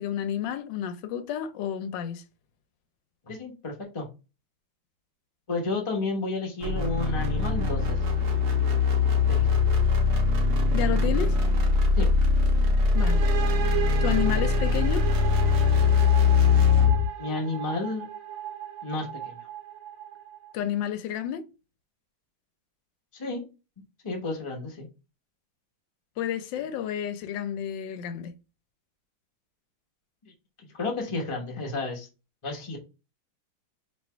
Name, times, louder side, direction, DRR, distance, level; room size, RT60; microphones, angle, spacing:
voice 1, 0.0-2.2 10.7-11.3 12.9-13.2 14.0-15.1 20.5-21.4 26.2-28.4, left 10 dB, 75° left, 1.2 m, -30 dB
voice 2, 3.2-4.1 5.5-8.0 9.3-9.5 12.0-12.1 17.2-18.1 18.8-19.5 23.1-23.4 24.0-24.9 30.2-30.3 30.6-32.1 32.4-32.8, left 3 dB, 45° left, 0.4 m, -32 dB
sound 1, 6.6-17.1, left 4 dB, 60° right, 1.2 m, -22 dB
sound 2, 13.0-20.6, right 10 dB, 85° right, 1.6 m, -36 dB
3.2 x 2.9 x 4.3 m
omnidirectional pair, 2.2 m